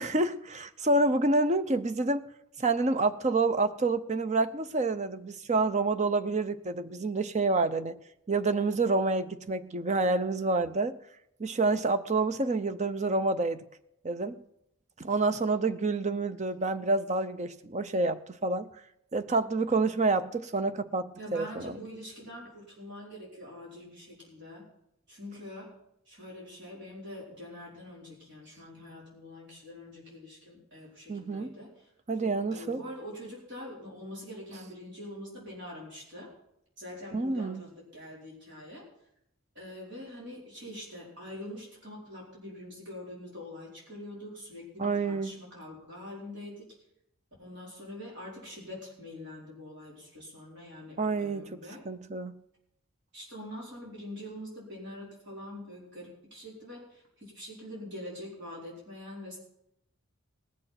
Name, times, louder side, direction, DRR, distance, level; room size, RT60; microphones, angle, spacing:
voice 1, 0.0-2.3 2.6-8.0 8.3-11.0 11.4-13.6 14.0-14.4 15.0-18.7 19.1-21.8 31.1-31.5 32.1-32.8 37.1-37.6 44.8-45.4 51.0-51.6 51.8-52.4, right 3 dB, 35° right, 0.7 m, -28 dB
voice 2, 21.2-24.7 25.1-25.7 26.1-31.7 32.2-36.3 36.8-38.8 39.5-46.6 47.4-51.8 53.1-59.4, left 1 dB, 55° right, 4.8 m, -44 dB
19.0 x 6.7 x 5.8 m
head